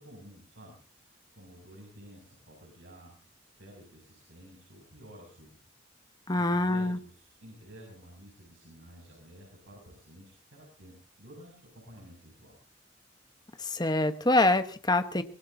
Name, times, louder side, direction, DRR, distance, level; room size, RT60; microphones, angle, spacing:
voice 1, 0.0-3.2 3.6-5.6 6.1-12.6, equal, 90° right, -2 dB, 6.5 m, -52 dB
voice 2, 6.3-7.0 13.6-15.2, left 2 dB, 20° left, 9 dB, 1.1 m, -25 dB
23.0 x 18.5 x 2.8 m, 0.36 s
head